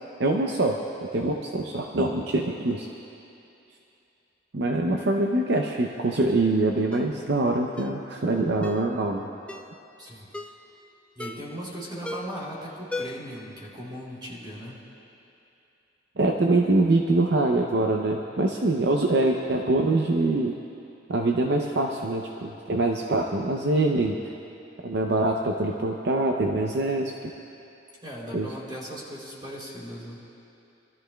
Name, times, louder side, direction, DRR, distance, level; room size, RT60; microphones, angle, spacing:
voice 1, 0.2-0.8 1.1-2.9 4.5-9.3 16.2-20.5 21.1-24.2 24.8-27.3 28.3-28.5, right 2 dB, 60° right, 1 dB, 0.6 m, -24 dB
Ringtone, 6.9-7.1 7.8-8.0 8.6-8.9 9.5-9.8 10.3-10.6 11.2-11.6 12.0-12.4 12.9-13.4 13.7-13.8, left 2 dB, 5° left, 0.4 m, -37 dB
voice 2, 11.1-14.8 28.0-30.2, equal, 25° right, -5 dB, 3.2 m, -38 dB
23.5 x 13.0 x 2.3 m, 2.8 s
head